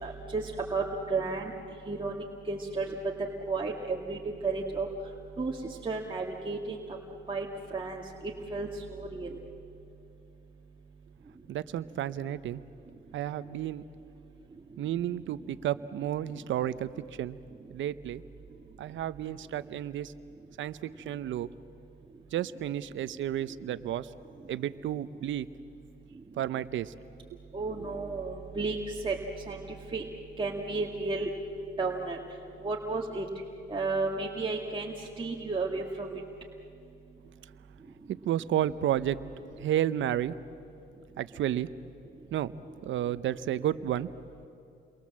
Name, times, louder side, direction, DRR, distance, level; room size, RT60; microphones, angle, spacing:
voice 1, 0.0-1.5 1.9-2.9 3.5-4.9 5.4-5.6 5.8-6.8 7.3-7.5 7.7-8.0 8.5-9.4 27.5-28.8 29.0-29.2 29.5-29.6 29.9-30.0 30.4-31.3 31.8-32.2 32.6-33.2 33.7-36.2, right 3 dB, 25° right, -2 dB, 2.2 m, -32 dB
voice 2, 11.5-12.6 13.1-13.8 14.8-16.9 17.2-17.4 17.7-18.2 18.8-20.1 20.6-21.5 22.3-24.1 24.5-25.5 26.4-26.9 27.8-27.9 38.1-39.2 39.6-40.3 41.2-41.7 42.3-44.1, right 11 dB, 75° right, 14 dB, 0.9 m, -31 dB
30.0 x 23.0 x 7.6 m, 2.6 s
cardioid pair, 90°, 20 cm